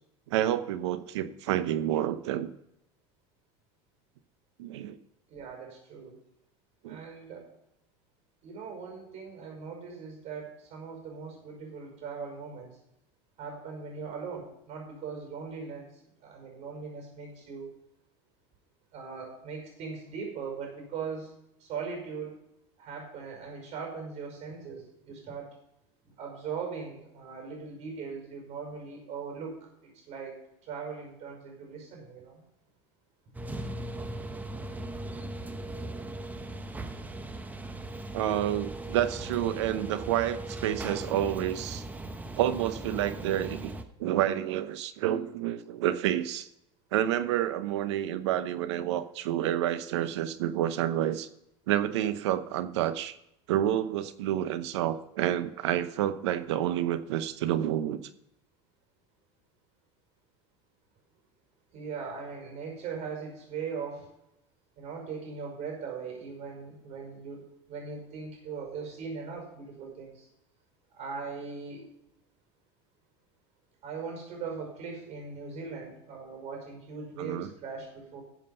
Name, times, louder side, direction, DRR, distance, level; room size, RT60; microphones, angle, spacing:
voice 1, 0.3-2.5 4.6-5.0 6.8-7.0 38.1-41.8 42.4-43.7 44.0-46.5 46.9-51.3 51.7-53.2 53.5-58.0 77.2-77.5, right 12 dB, 85° right, 12 dB, 0.9 m, -29 dB
voice 2, 5.3-6.1 6.9-7.5 8.4-12.7 13.4-15.9 16.2-17.8 18.9-21.3 21.6-22.4 22.8-25.6 26.0-32.4 61.7-64.1 64.8-70.3 70.9-71.9 73.8-78.2, right 5 dB, 50° right, 2 dB, 5.6 m, -40 dB
sound 1, 33.3-43.8, right 2 dB, 10° right, 1.0 m, -38 dB
13.5 x 7.5 x 5.5 m, 0.80 s
supercardioid pair, 105°, 14 cm